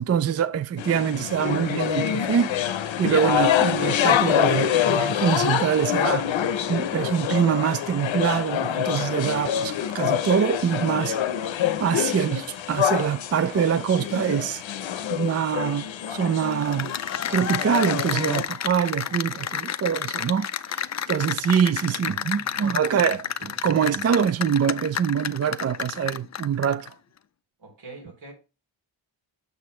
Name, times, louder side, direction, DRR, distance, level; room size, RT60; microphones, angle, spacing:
voice 1, 0.0-2.5 3.0-11.2 11.8-14.6 15.1-16.9 17.3-20.8 21.1-26.9, right 8 dB, 35° right, 0.4 m, -24 dB
sound 1, 0.8-18.4, left 10 dB, 90° left, 0.7 m, -26 dB
Cheering / Applause, 16.5-26.9, left 9 dB, 40° left, 0.4 m, -30 dB
voice 2, 21.7-23.6 27.6-28.3, right 2 dB, 80° right, 3.4 m, -46 dB
7.1 x 6.0 x 3.1 m
wide cardioid pair, 95°, 44 cm